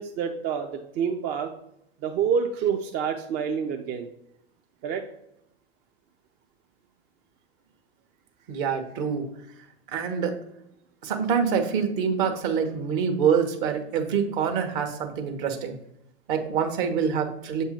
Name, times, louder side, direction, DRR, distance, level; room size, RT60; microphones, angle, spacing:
voice 1, 0.0-1.5 2.0-4.1 4.8-5.0, right 7 dB, 35° right, 4 dB, 0.5 m, -27 dB
voice 2, 8.5-9.3 9.9-10.4 11.0-15.7 16.3-17.6, right 6 dB, 50° right, 6 dB, 0.9 m, -26 dB
7.2 x 2.7 x 5.0 m, 0.79 s
figure-of-eight pair, 80°, 32 cm